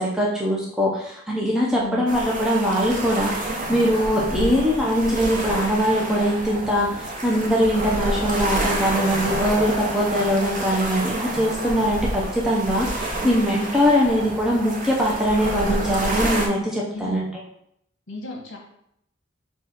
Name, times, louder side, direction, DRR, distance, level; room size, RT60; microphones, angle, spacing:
voice 1, 0.0-17.4, equal, 5° right, -4 dB, 0.5 m, -22 dB
voice 2, 1.7-2.1 4.3-4.7 16.9-17.2 18.1-18.6, left 2 dB, 75° left, -1 dB, 0.9 m, -35 dB
sound 1, 2.1-16.5, right 1 dB, 45° right, 0.7 m, -28 dB
4.0 x 2.4 x 4.2 m, 0.74 s
head